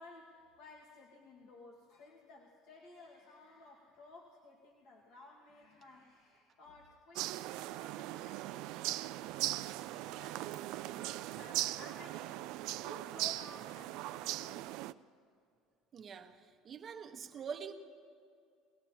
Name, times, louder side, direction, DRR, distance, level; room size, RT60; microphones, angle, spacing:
voice 1, 0.0-7.3 7.7-12.4 12.8-14.7, left 2 dB, 70° left, -3 dB, 1.8 m, -56 dB
sound 1, 7.2-14.9, right 16 dB, 70° right, 0.3 m, -39 dB
voice 2, 15.9-16.4 16.6-17.7, right 6 dB, 40° right, 4 dB, 1.2 m, -44 dB
22.0 x 17.5 x 2.9 m, 2.4 s
supercardioid pair, 90°, 0 cm